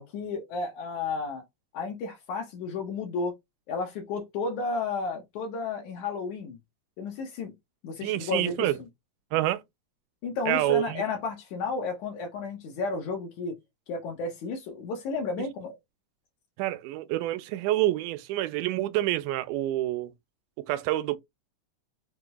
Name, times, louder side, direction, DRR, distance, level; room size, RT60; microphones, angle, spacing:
voice 1, 0.0-1.4 1.7-3.4 3.7-6.6 7.0-7.5 7.8-8.7 10.2-13.6 13.9-15.8, left 4 dB, 75° left, 2.2 m, -32 dB
voice 2, 8.0-8.8 9.3-9.6 10.5-11.0 16.6-20.1 20.6-21.2, right 15 dB, 90° right, 2.1 m, -27 dB
5.8 x 2.2 x 2.9 m
omnidirectional pair, 3.5 m